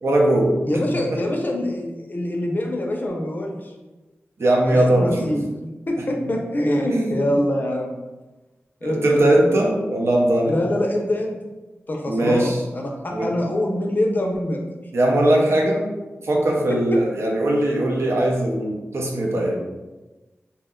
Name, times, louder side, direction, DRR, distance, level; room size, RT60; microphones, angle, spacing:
voice 1, 0.0-0.5 4.4-5.3 6.9-7.2 8.8-10.6 12.1-12.6 13.1-13.3 14.9-15.9 16.2-19.6, right 1 dB, 65° right, -1 dB, 0.6 m, -20 dB
voice 2, 0.7-3.7 4.7-5.5 5.9-8.0 8.8-9.4 10.5-11.4 11.9-14.6 16.7-17.0, left 1 dB, 40° left, 1 dB, 0.5 m, -24 dB
2.7 x 2.1 x 3.6 m, 1.1 s
wide cardioid pair, 100°, 5 cm